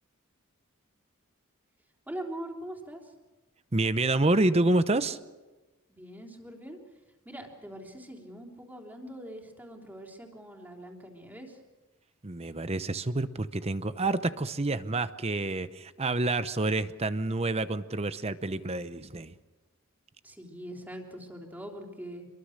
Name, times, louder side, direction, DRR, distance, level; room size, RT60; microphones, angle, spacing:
voice 1, 2.1-3.1 5.9-6.8 7.3-11.6 20.2-22.3, right 1 dB, 10° right, 1 dB, 3.6 m, -42 dB
voice 2, 3.7-5.2 12.2-19.3, right 2 dB, 30° right, 12 dB, 0.8 m, -28 dB
26.0 x 23.0 x 6.6 m, 1.2 s
head